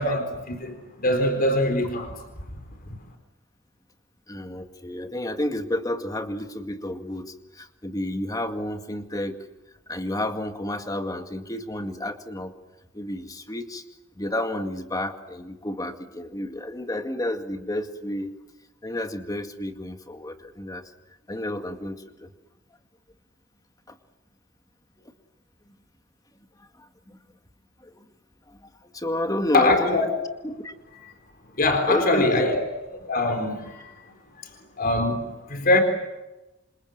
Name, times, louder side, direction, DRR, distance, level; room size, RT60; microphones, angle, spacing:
voice 1, 0.0-2.1 29.5-30.1 31.6-32.6 33.1-34.1 34.8-35.8, left 2 dB, 50° left, 3.9 m, -23 dB
voice 2, 4.3-9.4 9.9-12.5 12.9-13.8 14.1-18.3 18.8-20.8 21.3-22.3 23.9-24.0 25.0-25.1 26.8-27.2 27.8-28.1 28.5-30.1 30.4-30.7 31.9-32.4, left 1 dB, 20° left, 2.1 m, -31 dB
28.0 x 26.5 x 7.7 m
head